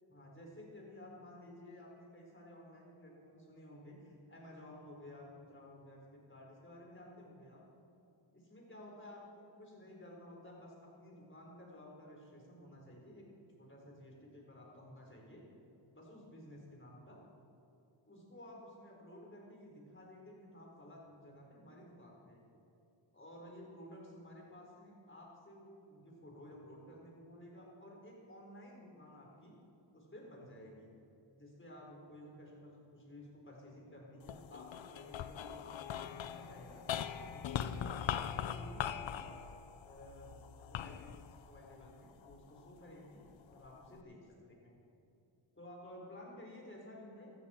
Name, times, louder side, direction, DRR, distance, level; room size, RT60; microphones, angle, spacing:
voice 1, 0.1-7.6 8.3-9.2 9.6-13.3 13.6-15.4 15.9-17.2 18.0-22.4 23.1-29.5 29.9-30.9 31.4-36.9 37.3-39.4 39.8-40.4 40.7-43.2 43.5-44.8 45.5-47.3, left 1 dB, 25° left, -2 dB, 4.1 m, -54 dB
sound 1, 34.2-42.7 43.3-44.0, left 9 dB, 65° left, 0.7 m, -41 dB
15.5 x 13.0 x 4.4 m, 2.6 s
cardioid pair, 80°, 48 cm